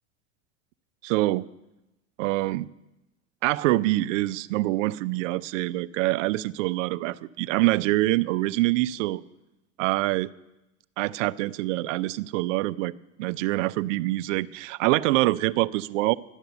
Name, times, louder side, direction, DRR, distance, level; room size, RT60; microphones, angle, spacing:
voice 1, 1.0-1.5 2.2-2.7 3.4-9.2 9.8-10.3 11.0-12.9 13.2-16.1, right 18 dB, 65° right, 17 dB, 0.6 m, -25 dB
12.0 x 9.2 x 6.9 m, 0.95 s
hypercardioid pair, 95°, 40 cm